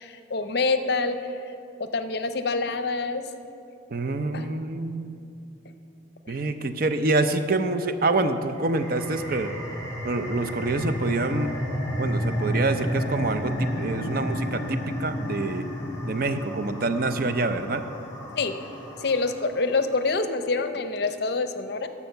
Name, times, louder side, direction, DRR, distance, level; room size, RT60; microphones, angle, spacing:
voice 1, 0.0-1.3 1.8-3.2 4.3-4.5 6.3-6.4 18.3-18.5 19.0-21.9, left 3 dB, 60° left, 9 dB, 0.6 m, -26 dB
voice 2, 3.9-5.2 6.3-9.5 10.0-11.5 12.0-15.7 16.0-17.8, right 2 dB, 50° right, 9 dB, 0.6 m, -26 dB
sound 1, 8.5-19.7, equal, 20° left, 1.6 m, -31 dB
11.5 x 7.1 x 6.6 m, 2.6 s
head